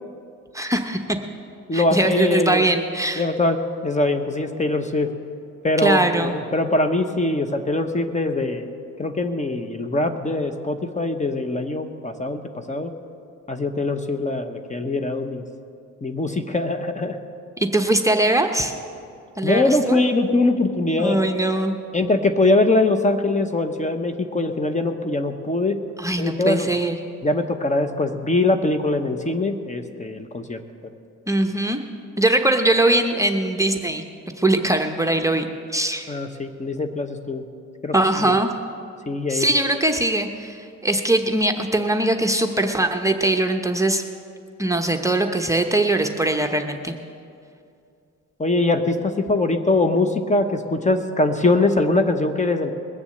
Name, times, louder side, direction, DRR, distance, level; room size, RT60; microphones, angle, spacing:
voice 1, 0.5-1.0 1.7-3.3 5.8-6.3 17.6-18.7 19.4-20.0 21.0-21.8 26.0-27.0 31.3-31.8 32.2-34.0 34.4-36.1 37.9-38.5 39.3-44.0 44.6-47.0, right 1 dB, 10° right, 4 dB, 0.9 m, -21 dB
voice 2, 1.7-2.7 3.2-3.6 3.8-5.1 5.6-8.7 9.0-12.9 13.5-15.4 16.0-17.2 19.4-21.2 21.9-25.8 26.2-26.7 27.2-30.6 36.1-37.4 37.8-37.9 38.2-38.3 39.1-39.5 48.4-52.7, left 2 dB, 25° left, 8 dB, 1.0 m, -22 dB
21.0 x 7.1 x 7.8 m, 2.4 s
cardioid pair, 90°, 30 cm